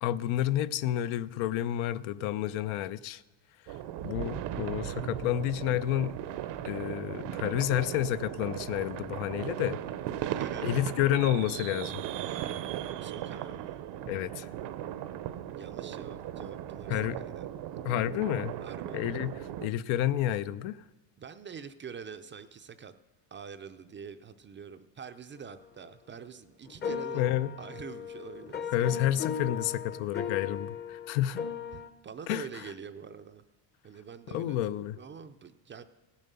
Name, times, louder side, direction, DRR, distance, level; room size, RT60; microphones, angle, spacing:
voice 1, 0.0-3.2 4.0-6.2 6.6-9.8 10.6-12.0 14.1-14.5 16.9-17.2 17.8-18.5 18.9-20.8 27.1-27.5 28.7-31.4 32.3-32.6 34.3-34.9, left 12 dB, 75° left, 0.6 m, -30 dB
sound 1, 3.7-19.7, right 11 dB, 60° right, 0.7 m, -37 dB
voice 2, 10.2-10.8 13.0-13.8 15.6-17.5 18.6-19.0 21.2-22.9 23.3-27.3 27.6-28.7 29.0-29.2 31.7-33.4 33.8-34.6 34.9-35.8, right 6 dB, 25° right, 0.4 m, -45 dB
sound 2, 26.7-31.9, left 7 dB, 20° left, 0.6 m, -37 dB
16.5 x 7.3 x 6.8 m
cardioid pair, 130°, 48 cm